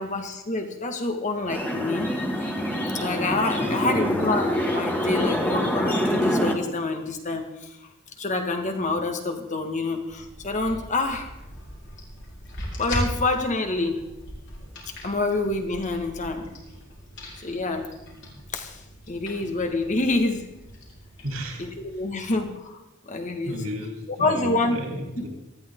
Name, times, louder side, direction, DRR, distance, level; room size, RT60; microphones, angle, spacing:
voice 1, 0.0-2.2 2.9-7.8 8.2-11.3 12.8-14.1 15.0-16.5 17.4-17.9 18.5-18.8 19.1-20.5 21.6-22.8 23.1-23.6 24.2-24.8 25.2-25.3, left 2 dB, 35° left, 5 dB, 1.8 m, -27 dB
sound 1, 1.5-6.5, equal, 10° left, 2.2 m, -25 dB
voice 2, 3.6-4.2 21.2-21.7 23.4-25.3, equal, 80° right, 0 dB, 3.9 m, -33 dB
sound 2, 10.1-22.2, equal, 60° left, 4.8 m, -39 dB
18.5 x 13.5 x 3.9 m, 0.92 s
head